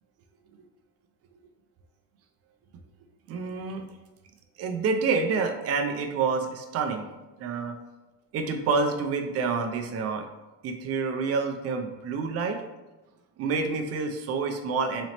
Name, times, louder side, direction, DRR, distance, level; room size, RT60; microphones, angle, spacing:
voice 1, 3.3-3.8 4.6-7.1 7.4-7.7 8.3-10.3 10.6-12.6 13.4-15.1, right 4 dB, 45° right, 5 dB, 0.4 m, -28 dB
4.0 x 3.0 x 2.9 m, 1.1 s
cardioid pair, 165°, 33 cm